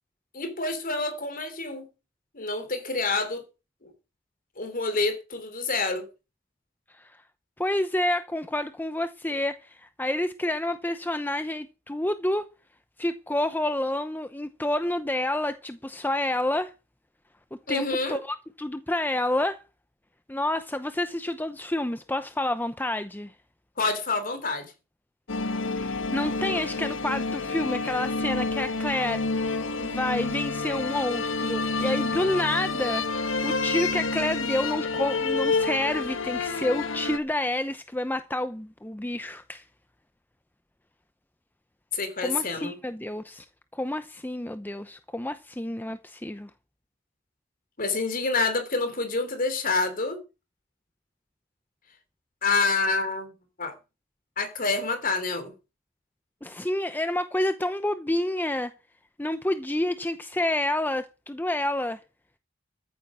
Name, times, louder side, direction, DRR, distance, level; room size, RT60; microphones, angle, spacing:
voice 1, 0.3-1.9 2.3-3.4 3.8-3.9 4.6-6.1 17.7-18.2 23.8-24.7 41.9-42.8 47.8-50.2 52.4-53.3 53.6-53.7 54.4-55.5, left 3 dB, 45° left, 3.3 m, -27 dB
voice 2, 7.6-12.4 13.0-16.7 17.7-19.6 20.3-23.3 25.8-39.6 42.2-43.4 43.7-46.5 56.4-58.7 59.2-62.0, left 1 dB, 10° left, 0.7 m, -29 dB
sound 1, 25.3-37.2, left 3 dB, 70° left, 1.6 m, -29 dB
14.0 x 9.0 x 6.2 m
head